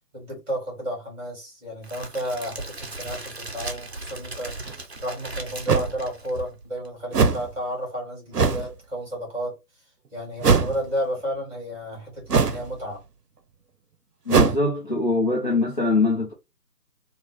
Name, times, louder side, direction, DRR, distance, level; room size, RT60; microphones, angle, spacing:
voice 1, 0.1-4.6 5.0-9.6 10.1-13.0, equal, 10° right, 2.5 m, -32 dB
Crackle, 1.8-6.9, right 2 dB, 40° right, 0.7 m, -37 dB
sound 1, 4.7-4.8 5.7-5.9 7.1-7.5 8.3-8.7 10.4-10.8 12.3-12.7 14.3-14.6, right 5 dB, 70° right, 0.7 m, -20 dB
voice 2, 14.3-16.3, left 3 dB, 30° left, 0.9 m, -22 dB
3.7 x 2.4 x 3.2 m
figure-of-eight pair, 155°, 48 cm